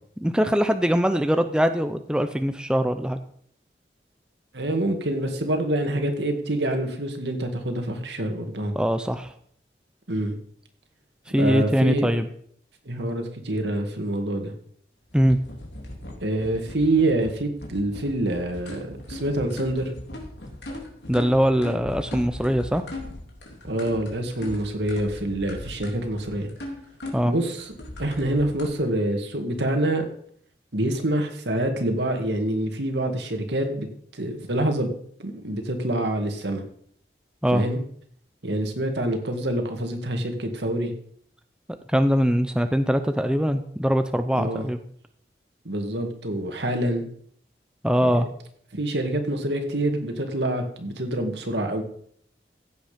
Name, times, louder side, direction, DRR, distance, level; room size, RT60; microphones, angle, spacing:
voice 1, 0.2-3.2 8.7-9.3 11.3-12.3 15.1-15.4 21.1-22.8 27.1-27.3 37.4-37.6 41.9-44.8 47.8-48.3, equal, 5° right, 8 dB, 0.6 m, -22 dB
voice 2, 4.5-8.7 10.1-10.3 11.4-12.1 12.9-14.5 16.2-19.9 23.6-26.5 27.2-27.7 28.0-30.1 30.7-33.9 34.1-34.9 35.2-36.6 37.5-37.8 38.4-40.9 44.3-44.7 45.6-47.0 48.0-48.2 48.7-51.8, right 1 dB, 80° right, 4 dB, 2.2 m, -26 dB
sound 1, 15.1-28.7, left 1 dB, 85° left, 3.4 m, -39 dB
16.0 x 8.1 x 5.2 m, 0.64 s
head